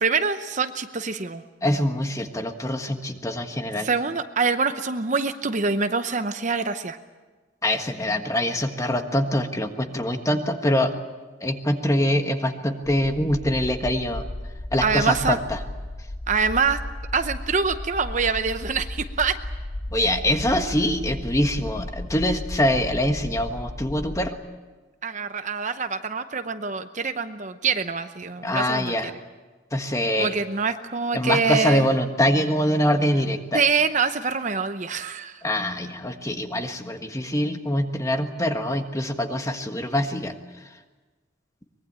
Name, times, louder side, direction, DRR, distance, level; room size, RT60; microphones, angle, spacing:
voice 1, 0.0-1.4 3.8-7.0 14.8-15.4 16.3-16.8 17.1-19.4 25.0-28.9 30.2-31.8 33.5-35.4, right 5 dB, 35° right, 9 dB, 0.8 m, -25 dB
voice 2, 1.6-3.9 7.6-10.9 11.4-14.2 14.7-15.6 19.9-24.4 28.4-29.1 29.7-30.3 31.1-33.6 35.4-40.3, left 1 dB, 15° left, 6 dB, 1.5 m, -24 dB
sound 1, 12.8-24.3, left 1 dB, 50° left, 1.3 m, -35 dB
23.5 x 21.5 x 8.8 m, 1.3 s
head